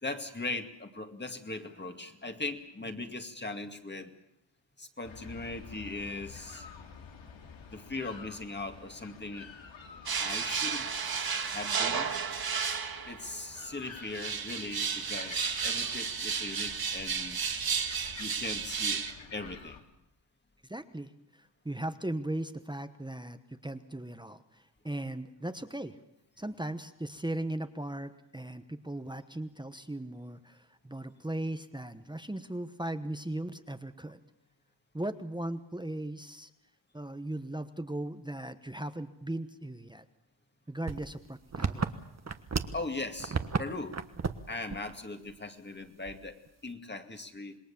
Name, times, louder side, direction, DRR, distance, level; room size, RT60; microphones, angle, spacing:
voice 1, 0.0-4.1 4.8-6.7 7.7-9.5 10.2-10.9 11.5-12.1 13.1-17.4 18.2-19.0 19.3-19.8 42.7-44.0 44.5-47.6, left 2 dB, 25° left, 5 dB, 2.2 m, -39 dB
sound 1, 5.0-19.8, left 5 dB, 90° left, 2.9 m, -50 dB
sound 2, 10.1-13.3 14.0-19.1, right 6 dB, 50° right, 1.8 m, -33 dB
voice 2, 20.7-26.0 26.4-34.2 34.9-36.5 36.9-40.0 40.7-41.8, right 1 dB, 10° right, 8 dB, 1.1 m, -38 dB
sound 3, 40.9-42.9 43.2-43.6 43.9-44.4 44.7-44.9 45.3-45.4 46.1-46.5, right 5 dB, 35° right, 1.4 m, -32 dB
27.0 x 20.5 x 7.2 m, 0.83 s
cardioid pair, 90°, 45 cm